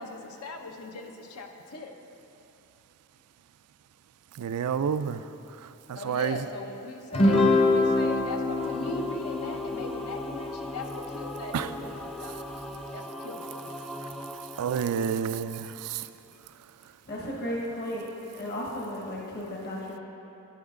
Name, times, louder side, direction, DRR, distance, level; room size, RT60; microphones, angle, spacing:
voice 1, 0.0-1.9 5.9-13.8 14.9-15.0 15.6-15.7, left 3 dB, 80° left, 4 dB, 0.8 m, -39 dB
voice 2, 4.4-5.2 5.9-6.4 11.5-11.7 14.6-16.1, right 7 dB, 90° right, 13 dB, 0.4 m, -29 dB
Guitar, 7.1-11.8, left 2 dB, 25° left, 0.7 m, -26 dB
Singing / Musical instrument, 8.6-16.0, equal, ahead, 0.3 m, -40 dB
voice 3, 17.1-18.1 18.3-20.0, equal, 45° left, -3 dB, 1.3 m, -34 dB
10.5 x 9.4 x 3.7 m, 3.0 s
head